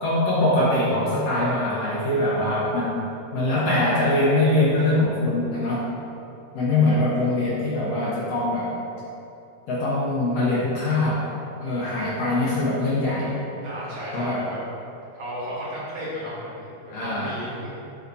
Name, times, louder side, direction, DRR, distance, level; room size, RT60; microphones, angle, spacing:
voice 1, 0.0-3.1 3.3-5.9 6.5-8.7 9.7-11.3 11.6-13.3 14.1-14.5 16.9-17.4, left 2 dB, 65° left, -7 dB, 1.9 m, -23 dB
voice 2, 13.6-14.6 15.1-17.7, equal, 60° right, -8 dB, 2.2 m, -34 dB
6.9 x 5.8 x 2.7 m, 2.7 s
omnidirectional pair, 3.5 m